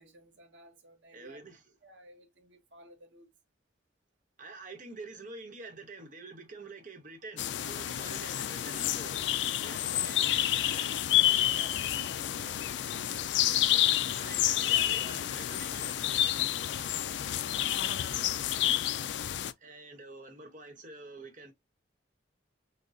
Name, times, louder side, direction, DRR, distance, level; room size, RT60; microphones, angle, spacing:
voice 1, 0.0-1.4 1.8-3.3 9.7-9.9 11.0-12.7 13.9-14.0 16.9-17.6, right 1 dB, 85° right, 1.4 m, -55 dB
voice 2, 1.1-1.6 4.4-9.3 9.6-11.2 12.4-12.6 13.1-13.3 13.6-16.4 19.6-21.5, right 3 dB, 45° right, 1.2 m, -47 dB
sound 1, 7.4-19.5, left 12 dB, 70° left, 0.4 m, -29 dB
6.4 x 2.3 x 2.4 m
head